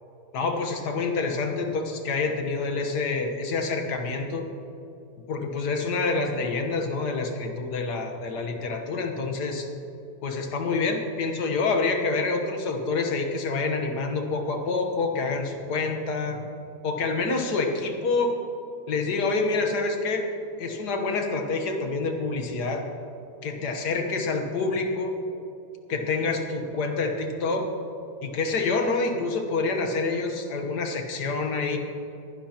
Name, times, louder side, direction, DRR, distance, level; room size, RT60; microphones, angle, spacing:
voice 1, 0.3-4.4 5.3-9.7 10.2-16.5 16.8-18.4 18.9-20.3 20.6-22.9 23.4-25.2 25.9-27.7 28.2-31.8, left 3 dB, 75° left, 4 dB, 1.8 m, -27 dB
22.0 x 11.0 x 2.9 m, 2.8 s
omnidirectional pair, 1.8 m